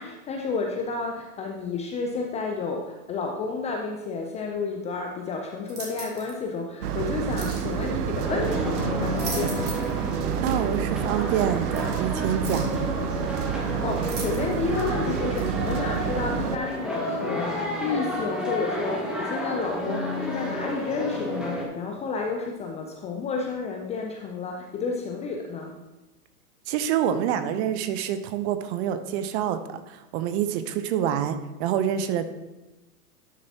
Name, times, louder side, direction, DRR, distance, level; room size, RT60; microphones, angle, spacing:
voice 1, 0.0-9.7 13.5-25.7, left 4 dB, 15° left, 2 dB, 0.4 m, -31 dB
sound 1, 5.7-6.4 7.4-7.7 8.9-10.0 10.3-10.4 11.7-11.8 12.4-12.8 14.0-14.7 15.4-15.5, right 3 dB, 20° right, 2.3 m, -38 dB
sound 2, 6.8-16.6, right 9 dB, 75° right, 0.7 m, -29 dB
sound 3, 8.2-21.7, left 1 dB, ahead, 1.7 m, -31 dB
voice 2, 10.4-12.7 26.7-32.3, right 9 dB, 45° right, 10 dB, 0.8 m, -27 dB
11.5 x 6.7 x 2.8 m, 1.0 s
hypercardioid pair, 110°, 47 cm